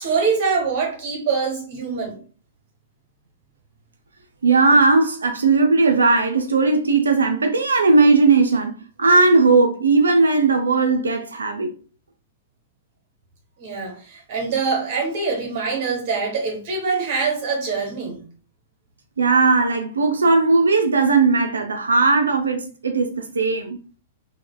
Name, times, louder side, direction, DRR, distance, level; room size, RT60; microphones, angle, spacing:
voice 1, 0.0-2.2 13.6-18.2, right 5 dB, 50° right, 0.8 m, -24 dB
voice 2, 4.4-11.7 19.2-23.8, right 3 dB, 80° right, 0.3 m, -17 dB
3.1 x 2.0 x 2.2 m
figure-of-eight pair, 105°, 0 cm